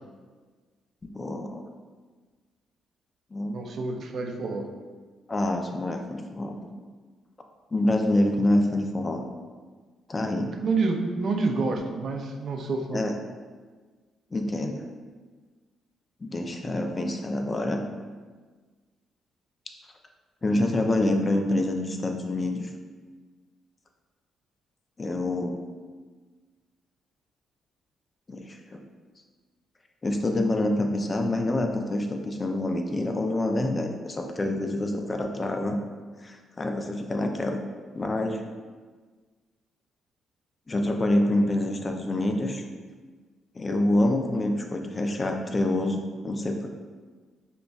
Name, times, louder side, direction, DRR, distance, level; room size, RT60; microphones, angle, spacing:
voice 1, 1.1-1.6 3.3-3.5 5.3-6.6 7.7-9.2 10.1-10.5 12.9-13.1 14.3-14.8 16.2-17.8 20.4-22.7 25.0-25.6 28.3-28.8 30.0-35.8 36.2-37.6 37.9-38.4 40.7-42.6 43.6-46.7, left 1 dB, 25° left, 4 dB, 0.4 m, -26 dB
voice 2, 3.4-4.7 10.5-13.1, right 3 dB, 55° right, 3 dB, 0.4 m, -28 dB
5.1 x 2.1 x 2.3 m, 1.4 s
cardioid pair, 90°, 0 cm